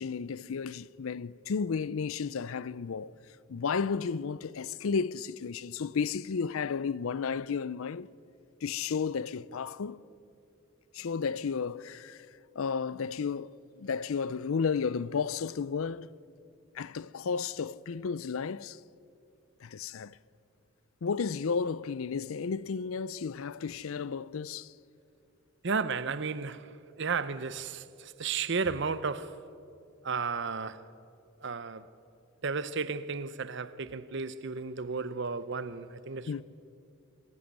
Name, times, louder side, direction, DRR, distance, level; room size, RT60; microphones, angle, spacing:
voice 1, 0.0-3.1 3.5-8.1 8.6-10.0 10.9-12.3 12.6-16.1 16.7-18.8 19.6-20.2 21.0-24.7 36.3-36.4, left 5 dB, 75° left, 0.5 m, -33 dB
voice 2, 25.6-26.7 27.0-29.4 30.0-30.8 31.4-31.9 32.4-36.4, right 5 dB, 55° right, 0.7 m, -33 dB
25.5 x 11.5 x 9.4 m
head